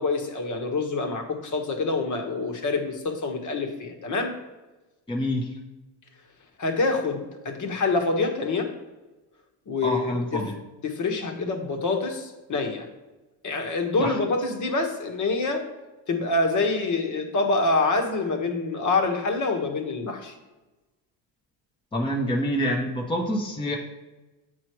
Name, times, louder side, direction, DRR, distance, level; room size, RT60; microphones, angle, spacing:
voice 1, 0.0-4.4 6.6-8.7 9.7-10.5 10.8-12.9 13.4-15.6 16.1-20.4, left 3 dB, 40° left, 4 dB, 1.5 m, -26 dB
voice 2, 5.1-5.5 9.8-10.6 14.0-14.2 21.9-23.8, equal, 10° left, -1 dB, 1.1 m, -27 dB
8.4 x 4.8 x 4.7 m, 1.1 s
supercardioid pair, 110°, 47 cm